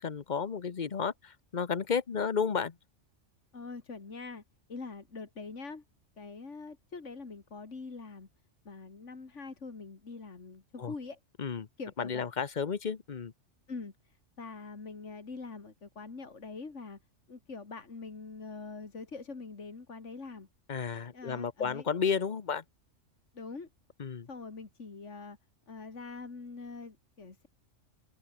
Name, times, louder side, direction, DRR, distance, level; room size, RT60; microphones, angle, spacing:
voice 1, 0.0-2.7 10.8-10.9 11.4-11.7 12.0-13.3 20.7-22.6 24.0-24.3, left 6 dB, 40° left, 1.0 m, -32 dB
voice 2, 3.5-4.4 4.7-5.8 6.2-8.3 8.6-11.2 11.8-12.3 13.7-13.9 14.4-17.0 17.3-20.5 21.1-21.9 23.3-23.7 24.3-25.4 25.7-27.5, left 4 dB, 75° left, 2.8 m, -44 dB
omnidirectional pair, 1.3 m